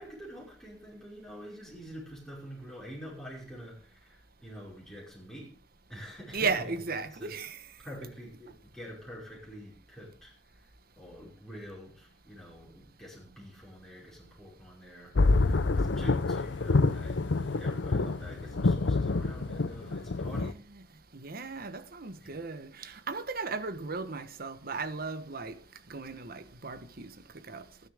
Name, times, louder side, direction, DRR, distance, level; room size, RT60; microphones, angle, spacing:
voice 1, 0.0-5.5 5.9-6.8 7.1-7.4 7.8-20.6 22.2-22.3, equal, 5° left, 5.5 m, -47 dB
voice 2, 6.3-7.6 20.2-20.8 21.1-25.6 25.9-27.7, right 4 dB, 55° right, 1.2 m, -36 dB
sound 1, 15.2-20.5, left 3 dB, 85° left, 0.7 m, -27 dB
19.0 x 11.0 x 3.6 m
head